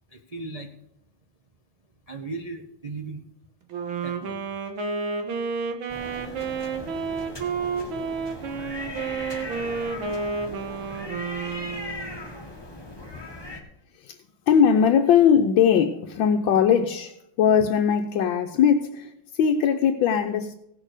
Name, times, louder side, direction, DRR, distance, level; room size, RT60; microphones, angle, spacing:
voice 1, 0.1-0.8 2.1-3.3 4.0-4.6, right 3 dB, 50° right, 0.4 m, -37 dB
Wind instrument woodwind instrument, 3.7-12.3, right 5 dB, 85° right, 2.1 m, -31 dB
sound 1, 5.9-13.6, left 2 dB, 15° left, 1.4 m, -38 dB
voice 2, 14.5-20.5, left 7 dB, 80° left, 1.4 m, -20 dB
16.5 x 6.5 x 4.9 m
omnidirectional pair, 2.1 m